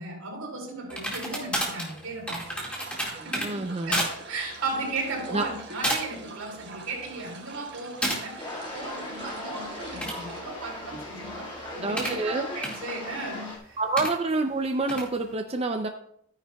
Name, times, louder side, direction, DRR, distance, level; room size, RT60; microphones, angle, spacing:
voice 1, 0.0-2.5 3.2-8.5 8.7-13.8, right 3 dB, 85° right, -1 dB, 3.9 m, -36 dB
sound 1, 0.9-3.5 3.9-4.1 4.5-4.7 5.4-5.6 5.8-6.2 6.6-7.1 8.0-8.2 9.8-12.2 12.6-12.8 14.0-14.1 14.9-15.1, equal, 5° left, 1.9 m, -31 dB
sound 2, 2.4-10.4, right 3 dB, 50° right, 1.4 m, -45 dB
voice 2, 3.1-4.1 5.3-5.5 10.9-11.0 11.8-12.5 13.8-15.9, right 3 dB, 30° right, 5 dB, 0.5 m, -28 dB
sound 3, 8.4-13.6, left 1 dB, 25° left, 1.9 m, -38 dB
13.0 x 9.7 x 2.3 m, 0.67 s
head